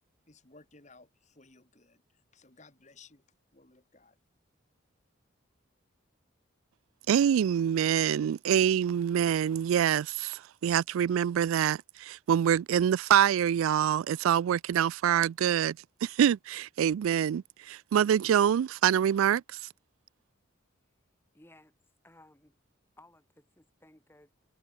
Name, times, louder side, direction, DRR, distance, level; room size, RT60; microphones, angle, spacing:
voice 1, 0.3-2.0 2.3-3.2 3.5-4.2, left 3 dB, 35° left, 2.3 m, -58 dB
voice 2, 7.1-19.4, right 9 dB, 85° right, 0.3 m, -25 dB
voice 3, 21.3-21.8 22.0-22.6 23.0-24.5, left 1 dB, 10° left, 2.0 m, -58 dB
head